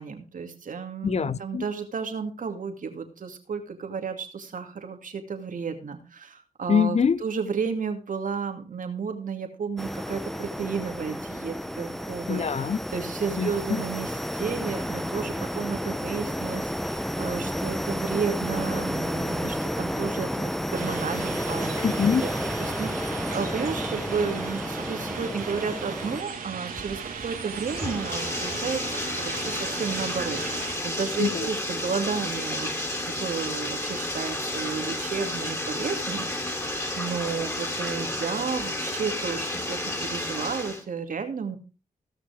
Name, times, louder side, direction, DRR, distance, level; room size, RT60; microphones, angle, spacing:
voice 1, 0.0-12.5 12.9-21.8 22.2-22.3 22.6-41.6, right 5 dB, 65° right, 2.5 m, -32 dB
voice 2, 1.0-1.7 6.7-7.2 12.3-12.8 13.4-13.8 21.8-22.3 31.2-31.5, left 6 dB, 50° left, 0.7 m, -24 dB
sound 1, 9.8-26.2, equal, ahead, 0.9 m, -31 dB
sound 2, 20.7-30.8, right 6 dB, 80° right, 2.7 m, -37 dB
Bathtub (filling or washing), 26.8-40.8, left 1 dB, 20° left, 4.6 m, -31 dB
17.0 x 6.1 x 4.9 m
cardioid pair, 55°, 15 cm